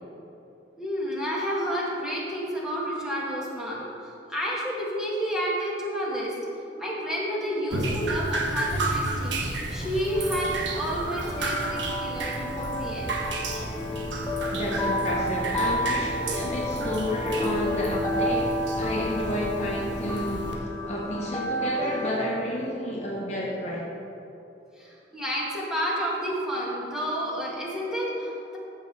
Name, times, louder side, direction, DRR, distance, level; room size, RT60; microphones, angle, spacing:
voice 1, 0.8-6.3 6.8-13.2 24.8-28.6, equal, 5° right, -6 dB, 1.8 m, -30 dB
Drip, 7.7-20.6, right 2 dB, 85° right, 1.2 m, -32 dB
sound 1, 10.0-22.4, equal, 15° left, 0.8 m, -31 dB
voice 2, 14.5-23.9, left 1 dB, 40° left, -3 dB, 1.3 m, -31 dB
14.0 x 6.5 x 3.9 m, 2.8 s
head